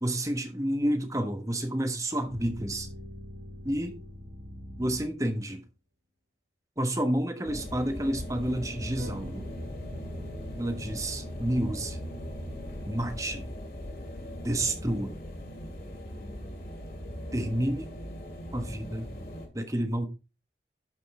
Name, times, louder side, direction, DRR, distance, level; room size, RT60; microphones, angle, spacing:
voice 1, 0.0-2.9 3.6-4.0 4.8-5.6 6.8-9.5 10.6-12.0 12.9-13.5 14.4-15.2 17.3-17.9 18.5-19.1 19.5-20.1, right 1 dB, 20° right, 1.3 m, -30 dB
sound 1, 2.3-5.4 9.0-13.6, equal, 85° right, 3.9 m, -44 dB
sound 2, 7.4-19.5, equal, 55° left, 2.8 m, -40 dB
12.0 x 5.3 x 3.7 m
head